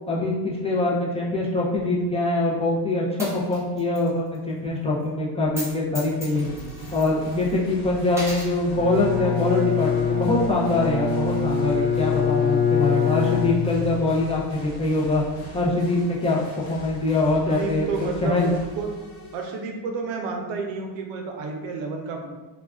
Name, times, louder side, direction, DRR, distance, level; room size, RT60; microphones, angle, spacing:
voice 1, 0.1-6.4 6.9-15.2 15.5-16.4 16.7-17.9 18.2-18.5, left 2 dB, 15° left, -5 dB, 0.4 m, -23 dB
Coin (dropping), 3.2-4.1 4.3-4.4 5.4-5.7 5.9-7.6 8.1-8.5, equal, 5° right, 0.8 m, -36 dB
sound 1, 5.9-19.7, right 1 dB, 90° left, 0.9 m, -41 dB
voice 2, 6.3-6.8 17.5-18.9 19.3-22.3, right 4 dB, 80° right, 2 dB, 0.7 m, -31 dB
Bowed string instrument, 8.7-14.1, left 6 dB, 50° left, 0.6 m, -24 dB
2.3 x 2.3 x 3.4 m, 1.2 s
supercardioid pair, 100°, 45 cm